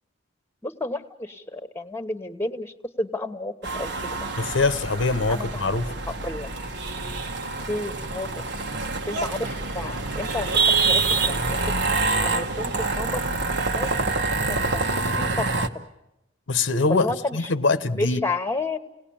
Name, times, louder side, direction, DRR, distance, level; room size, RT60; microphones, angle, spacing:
voice 1, 0.6-4.1 5.3-5.7 6.1-6.5 7.7-8.4 9.1-11.6 12.2-13.2 13.7-15.8 16.9-17.5 18.0-18.8, left 2 dB, 15° left, 10 dB, 1.3 m, -31 dB
sound 1, 3.6-15.7, right 3 dB, 60° right, 1.4 m, -26 dB
voice 2, 4.4-5.9 16.5-17.1 17.3-18.2, left 3 dB, 75° left, 11 dB, 1.0 m, -23 dB
30.0 x 19.0 x 8.8 m, 0.93 s
head